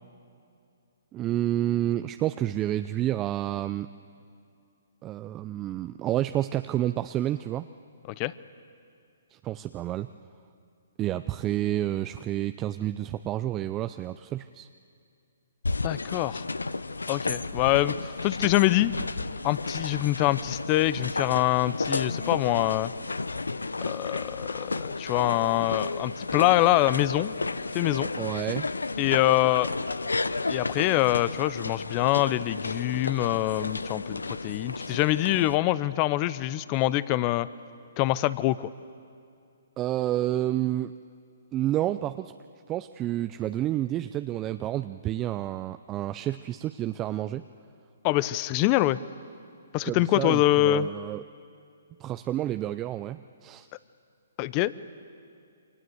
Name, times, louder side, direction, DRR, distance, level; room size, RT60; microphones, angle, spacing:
voice 1, 1.1-3.9 5.0-7.7 9.3-10.1 11.0-14.7 28.2-28.7 39.8-40.9 41.5-42.3 42.7-47.5 49.8-51.2 52.0-53.7, right 13 dB, 25° right, 10 dB, 0.6 m, -29 dB
sound 1, 15.6-35.6, left 3 dB, 90° left, 0.7 m, -32 dB
voice 2, 15.8-16.4 17.1-18.9 19.4-22.9 23.8-27.3 27.7-28.1 29.0-29.7 30.5-37.5 38.0-38.7 48.0-49.0 49.7-50.9 54.4-54.7, left 16 dB, 30° left, 17 dB, 0.8 m, -25 dB
28.0 x 24.5 x 8.0 m, 2.5 s
hypercardioid pair, 135°, 0 cm